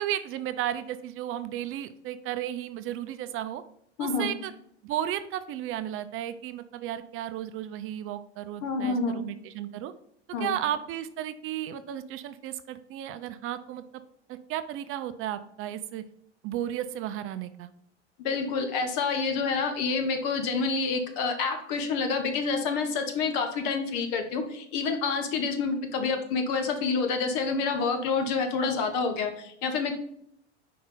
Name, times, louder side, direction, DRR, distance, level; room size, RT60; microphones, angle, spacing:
voice 1, 0.0-3.6 4.0-4.5 4.8-9.9 10.4-13.8 14.3-16.0 16.4-17.7, right 11 dB, 40° right, 11 dB, 0.5 m, -34 dB
voice 2, 8.6-9.2 10.3-10.5 18.2-29.9, left 4 dB, 55° left, 6 dB, 1.4 m, -28 dB
5.4 x 4.6 x 3.8 m, 0.71 s
hypercardioid pair, 85°, 34 cm